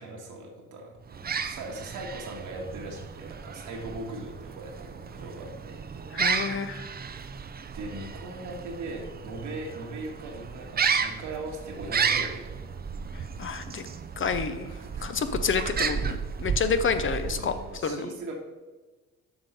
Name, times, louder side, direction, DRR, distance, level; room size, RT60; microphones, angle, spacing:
voice 1, 0.0-5.8 7.7-12.5 14.7-15.1 17.3-18.4, right 2 dB, 85° right, 0 dB, 1.9 m, -39 dB
sound 1, 1.1-17.8, right 6 dB, 30° right, 0.6 m, -33 dB
voice 2, 6.1-6.9 13.4-13.9 14.2-14.7 15.0-17.6 17.8-18.1, left 5 dB, 40° left, 10 dB, 0.8 m, -29 dB
7.8 x 5.5 x 5.4 m, 1.3 s
cardioid pair, 90°, 30 cm